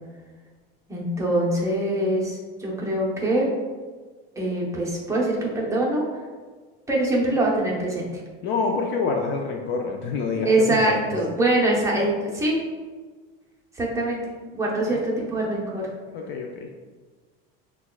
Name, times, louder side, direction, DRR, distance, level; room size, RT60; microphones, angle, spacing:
voice 1, 0.9-3.5 4.4-6.1 6.9-8.2 10.4-12.6 13.7-14.2 14.5-15.9, right 1 dB, 10° right, -3 dB, 0.7 m, -23 dB
voice 2, 8.4-11.1 14.9-15.0 16.1-16.8, left 4 dB, 40° left, 1 dB, 0.4 m, -27 dB
5.9 x 2.3 x 2.3 m, 1.4 s
supercardioid pair, 125°, 29 cm